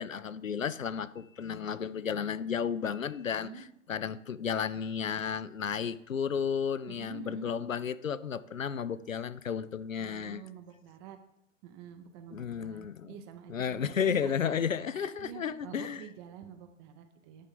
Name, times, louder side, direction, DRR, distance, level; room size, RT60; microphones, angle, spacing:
voice 1, 0.0-3.5 3.9-10.4 12.3-13.1 13.5-16.0, left 7 dB, 85° left, 0.5 m, -33 dB
voice 2, 6.9-7.5 10.0-11.2 11.6-14.5 14.9-17.5, right 9 dB, 20° right, 0.5 m, -48 dB
10.0 x 3.6 x 5.1 m
figure-of-eight pair, 105°, 39 cm